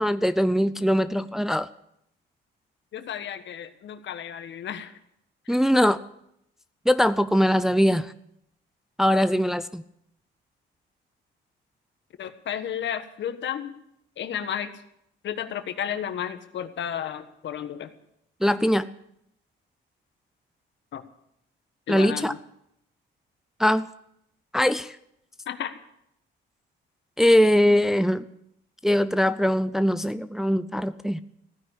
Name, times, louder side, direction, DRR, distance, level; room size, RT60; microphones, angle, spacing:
voice 1, 0.0-1.7 5.5-6.0 6.9-8.1 9.0-9.8 18.4-18.9 21.9-22.3 23.6-23.9 24.5-24.9 27.2-28.2 28.8-31.2, equal, ahead, 12 dB, 0.5 m, -21 dB
voice 2, 2.9-5.0 5.5-5.6 12.2-13.7 14.2-14.7 15.2-17.9 20.9-21.0 21.9-22.4 25.5-25.8, left 9 dB, 65° left, 10 dB, 1.4 m, -33 dB
16.0 x 10.0 x 8.5 m, 0.76 s
cardioid pair, 90°, 20 cm